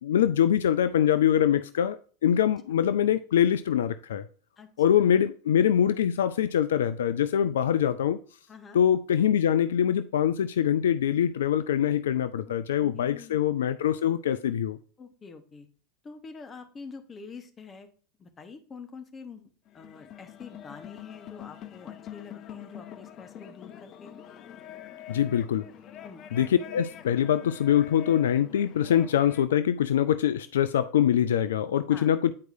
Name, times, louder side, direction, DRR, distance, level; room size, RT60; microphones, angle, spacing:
voice 1, 0.0-4.3 4.8-8.2 8.7-14.8 25.1-25.7 26.3-32.3, left 9 dB, 70° left, 0.3 m, -24 dB
voice 2, 8.5-8.8 12.5-13.4 15.0-15.7 16.0-17.9 18.2-19.5 19.7-24.2 26.0-26.2 31.9-32.1, left 5 dB, 25° left, 1.1 m, -46 dB
sound 1, 19.7-29.5, left 10 dB, 40° left, 0.6 m, -45 dB
9.5 x 4.6 x 2.6 m
figure-of-eight pair, 80°, 0 cm